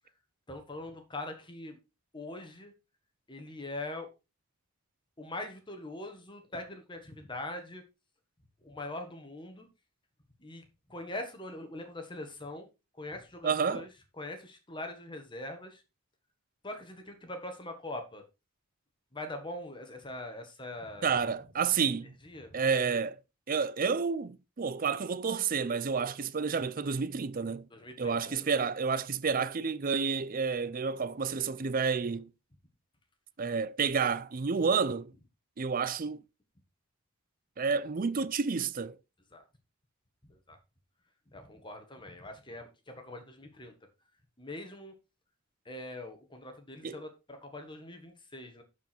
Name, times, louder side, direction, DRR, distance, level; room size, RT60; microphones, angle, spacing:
voice 1, 0.5-1.8 2.1-2.7 3.3-4.1 5.2-7.8 8.6-9.7 10.4-10.6 10.9-12.7 13.0-13.9 14.2-15.8 16.6-18.2 19.1-21.2 22.2-22.6 27.7-28.4 39.3-39.4 40.3-40.6 41.3-43.7 44.4-44.9 45.6-48.6, left 1 dB, 20° left, 1.6 m, -42 dB
voice 2, 13.4-13.8 21.0-22.1 22.5-23.2 23.5-27.7 28.0-32.3 33.4-35.1 35.6-36.2 37.6-39.0 46.8-47.0, right 5 dB, 40° right, 0.5 m, -30 dB
12.0 x 4.9 x 4.4 m
head